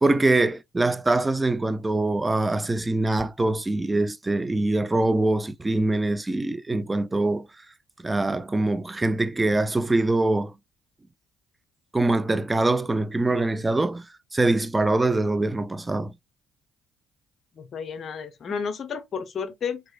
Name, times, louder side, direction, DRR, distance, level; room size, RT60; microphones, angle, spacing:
voice 1, 0.0-7.5 8.0-10.5 11.9-14.1 14.3-16.1, right 2 dB, 20° right, 0.4 m, -23 dB
voice 2, 17.6-19.8, left 6 dB, 50° left, 0.8 m, -32 dB
3.5 x 3.1 x 2.3 m
hypercardioid pair, 55°, 0 cm